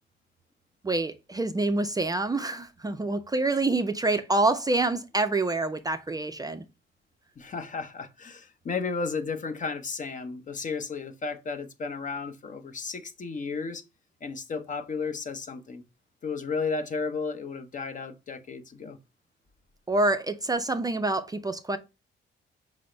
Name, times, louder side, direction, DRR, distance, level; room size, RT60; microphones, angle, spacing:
voice 1, 0.8-6.6 19.9-21.8, right 2 dB, 20° right, 0.4 m, -26 dB
voice 2, 7.4-13.8 14.2-15.8 16.2-19.0, left 4 dB, 40° left, 0.7 m, -33 dB
6.0 x 2.0 x 4.3 m
cardioid pair, 90°, 20 cm